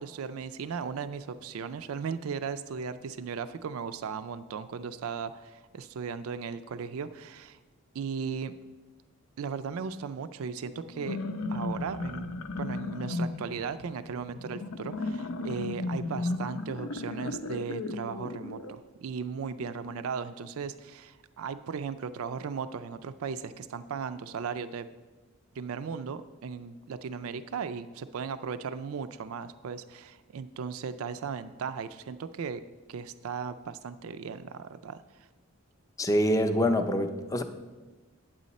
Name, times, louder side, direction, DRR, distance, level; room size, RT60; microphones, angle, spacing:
voice 1, 0.0-7.6 7.9-8.5 9.4-11.2 11.5-24.9 25.6-32.6 32.9-35.3, right 6 dB, 75° right, 12 dB, 0.4 m, -37 dB
sound 1, 10.9-18.7, left 2 dB, 85° left, 0.6 m, -35 dB
voice 2, 36.0-37.4, equal, 15° left, 6 dB, 0.4 m, -25 dB
9.1 x 7.6 x 4.1 m, 1.2 s
head